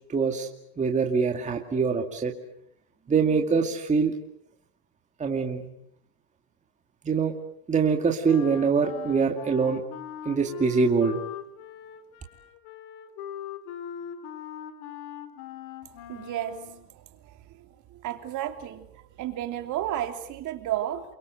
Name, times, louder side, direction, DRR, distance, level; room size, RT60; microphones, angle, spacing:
voice 1, 0.1-0.5 0.8-2.3 3.1-4.1 5.2-5.7 7.0-7.3 7.7-9.8 10.3-11.2, right 5 dB, 15° right, 2 dB, 2.3 m, -24 dB
Wind instrument woodwind instrument, 8.2-16.8, left 10 dB, 55° left, 3.6 m, -40 dB
voice 2, 16.1-16.6 18.0-18.8 19.2-21.0, right 12 dB, 40° right, 7 dB, 3.1 m, -31 dB
28.5 x 24.0 x 7.9 m, 0.71 s
supercardioid pair, 130°, 46 cm